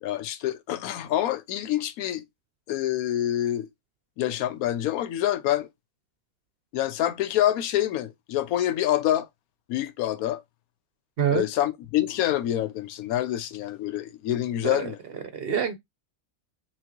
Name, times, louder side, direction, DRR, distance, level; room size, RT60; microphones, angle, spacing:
voice 1, 0.0-2.2 2.7-3.7 4.2-5.7 6.7-9.3 9.7-10.4 11.3-15.0, left 12 dB, 85° left, 1.0 m, -26 dB
voice 2, 15.3-15.8, right 8 dB, 55° right, 0.7 m, -25 dB
5.8 x 2.3 x 2.9 m
omnidirectional pair, 1.5 m